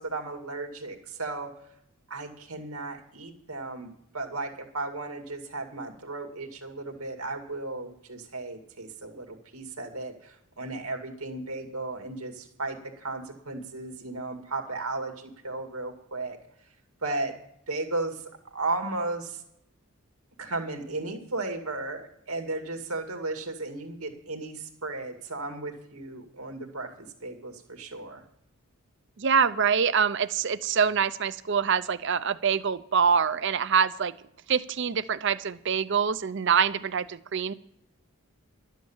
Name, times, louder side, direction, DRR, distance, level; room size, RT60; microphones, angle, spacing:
voice 1, 0.0-1.5 2.1-3.9 4.1-16.4 17.0-17.3 17.7-19.4 20.4-28.2, right 2 dB, 85° right, 4 dB, 2.3 m, -35 dB
voice 2, 29.2-34.1 34.5-37.5, right 6 dB, 55° right, 15 dB, 0.6 m, -25 dB
12.5 x 9.2 x 7.2 m, 0.77 s
head